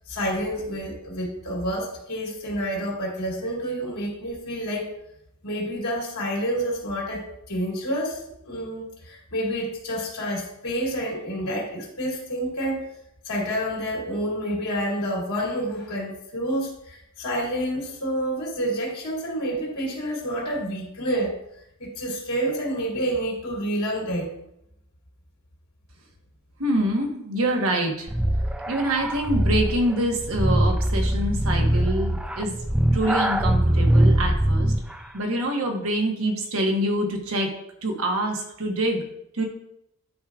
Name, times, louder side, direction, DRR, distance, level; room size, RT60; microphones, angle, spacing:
voice 1, 0.1-4.9 5.4-12.9 13.2-21.4 21.8-24.3, equal, 85° left, -4 dB, 2.6 m, -28 dB
voice 2, 26.6-28.1 28.7-32.5 32.9-34.7 35.1-37.5 37.8-39.0 39.3-39.4, right 1 dB, 65° right, 2 dB, 1.2 m, -25 dB
sound 1, 28.1-35.0, right 1 dB, 5° right, 0.3 m, -22 dB
10.0 x 4.9 x 2.4 m, 0.78 s
head